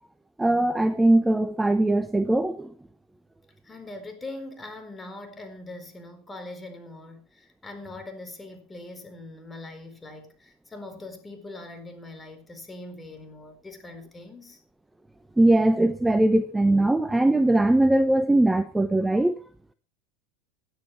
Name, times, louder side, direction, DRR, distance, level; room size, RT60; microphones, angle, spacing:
voice 1, 0.4-2.7 15.4-19.3, right 1 dB, 10° right, 0.9 m, -21 dB
voice 2, 3.6-14.6, left 2 dB, 15° left, 4.5 m, -42 dB
16.5 x 10.5 x 4.5 m
hypercardioid pair, 90°, 0 cm